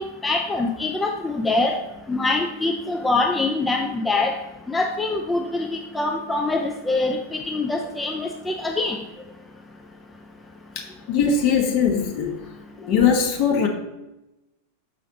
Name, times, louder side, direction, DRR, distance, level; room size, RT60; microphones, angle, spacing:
voice 1, 0.0-1.8 2.1-4.4 4.7-9.0, left 2 dB, 10° left, 2 dB, 0.5 m, -24 dB
voice 2, 10.7-12.3 12.8-13.7, left 6 dB, 45° left, 2 dB, 1.2 m, -21 dB
6.3 x 5.7 x 3.9 m, 0.96 s
figure-of-eight pair, 90°, 0 cm